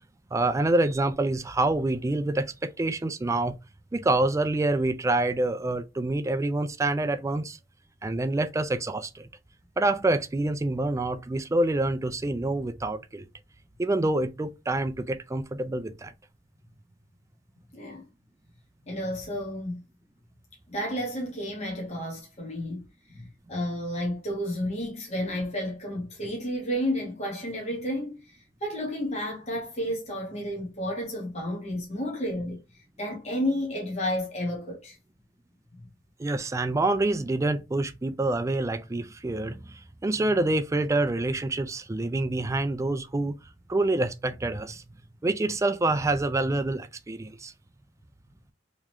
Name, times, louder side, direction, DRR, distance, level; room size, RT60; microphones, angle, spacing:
voice 1, 0.3-3.6 3.9-7.6 8.0-9.3 9.8-13.3 13.8-16.1 36.2-43.4 43.7-44.8 45.2-47.5, right 2 dB, 15° right, 0.3 m, -27 dB
voice 2, 17.7-18.0 18.9-19.8 20.7-35.0, equal, 35° left, 1.2 m, -32 dB
3.7 x 3.0 x 3.0 m
head